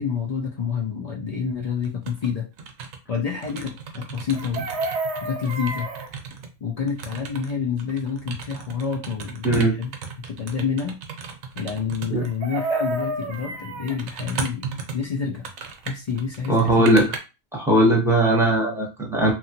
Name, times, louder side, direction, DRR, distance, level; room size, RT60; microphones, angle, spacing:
voice 1, 0.0-2.5 3.1-4.7 5.2-5.9 6.6-9.9 10.2-11.0 11.5-15.5 15.9-17.0, left 6 dB, 90° left, 0 dB, 0.3 m, -28 dB
sound 1, 1.8-2.3 2.6-6.5 6.9-12.3 13.2-13.4 13.9-17.2, right 6 dB, 80° right, 1.0 m, -36 dB
Chicken rooster, 4.3-6.1 12.2-14.0 16.2-16.3 16.6-16.9, right 2 dB, 60° right, 0.8 m, -30 dB
voice 2, 9.4-9.8 12.1-12.2 16.5-17.1 17.5-19.3, right 1 dB, 5° right, -2 dB, 0.8 m, -19 dB
3.0 x 2.4 x 2.8 m, 0.28 s
omnidirectional pair, 1.4 m